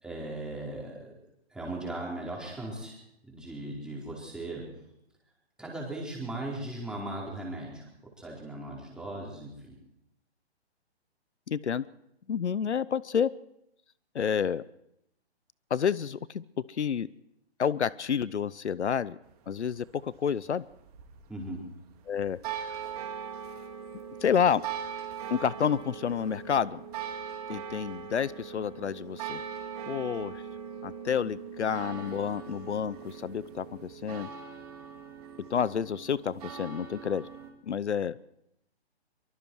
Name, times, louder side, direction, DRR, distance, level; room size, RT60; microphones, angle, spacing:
voice 1, 0.0-1.1 1.5-3.0 3.3-4.7 5.6-7.8 8.2-9.7 21.3-21.6, right 1 dB, ahead, -3 dB, 4.5 m, -38 dB
voice 2, 11.5-11.9 12.3-13.3 14.1-14.6 15.7-17.1 17.6-19.2 19.5-20.6 22.1-22.4 22.7-22.8 24.2-24.6 25.3-26.8 27.5-29.4 29.9-30.4 30.8-34.3 35.5-37.3 37.7-38.2, left 7 dB, 85° left, 20 dB, 0.8 m, -29 dB
sound 1, 19.2-37.5, right 7 dB, 35° right, 3.0 m, -41 dB
24.0 x 24.0 x 4.8 m, 0.79 s
hypercardioid pair, 145°, 33 cm